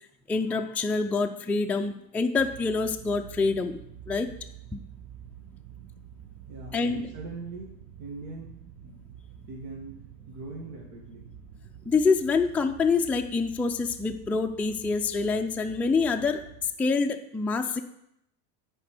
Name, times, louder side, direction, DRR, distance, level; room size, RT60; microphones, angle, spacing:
voice 1, 0.3-3.8 4.1-4.3 4.7-4.8 6.7-7.0 11.9-16.5 16.8-17.8, left 4 dB, 5° left, 3 dB, 0.4 m, -26 dB
sound 1, 2.4-16.7, right 8 dB, 45° right, 1.1 m, -48 dB
voice 2, 6.5-7.7 8.0-8.6 8.8-9.0 9.5-11.3, right 3 dB, 60° right, -2 dB, 2.0 m, -41 dB
10.0 x 4.5 x 5.0 m, 0.76 s
hypercardioid pair, 90°, 48 cm